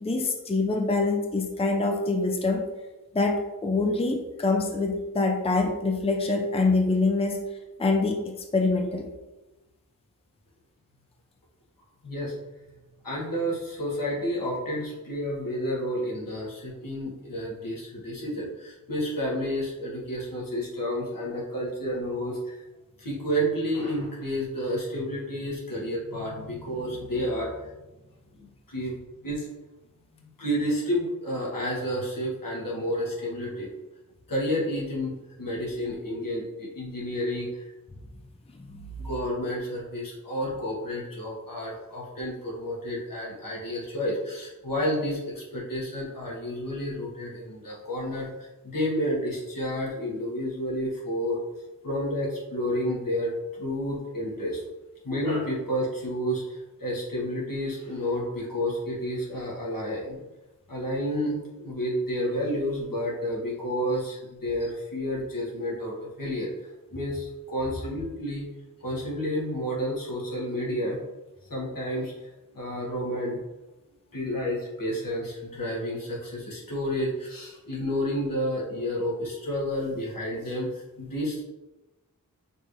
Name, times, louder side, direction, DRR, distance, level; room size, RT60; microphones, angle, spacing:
voice 1, 0.0-2.6 3.1-7.4 7.8-9.1 38.6-38.9, left 3 dB, 20° left, 2 dB, 0.5 m, -25 dB
voice 2, 12.0-12.4 13.0-22.6 23.0-27.7 28.4-29.0 29.2-29.5 30.4-33.7 34.3-37.6 39.0-51.4 51.8-54.6 55.0-60.2 60.7-66.5 66.9-68.5 68.8-71.0 71.5-72.3 72.5-73.4 74.1-81.4, equal, 75° left, -5 dB, 1.4 m, -30 dB
5.5 x 3.0 x 2.6 m, 1.0 s
wide cardioid pair, 65°, 33 cm